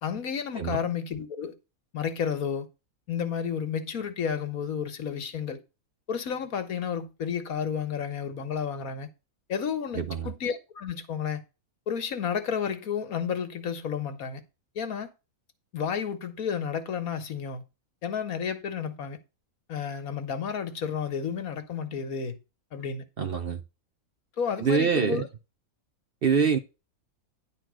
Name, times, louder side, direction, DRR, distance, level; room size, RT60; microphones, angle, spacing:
voice 1, 0.0-1.6 1.9-2.7 3.1-5.6 6.1-9.1 9.5-11.4 11.9-14.4 14.7-15.1 15.7-17.6 18.0-19.2 19.7-22.4 22.7-23.0 24.4-25.3, left 7 dB, 75° left, 1.7 m, -31 dB
voice 2, 9.9-10.3 23.2-23.6 24.6-25.2 26.2-26.6, right 6 dB, 50° right, 0.8 m, -25 dB
10.5 x 4.2 x 6.2 m
omnidirectional pair, 1.5 m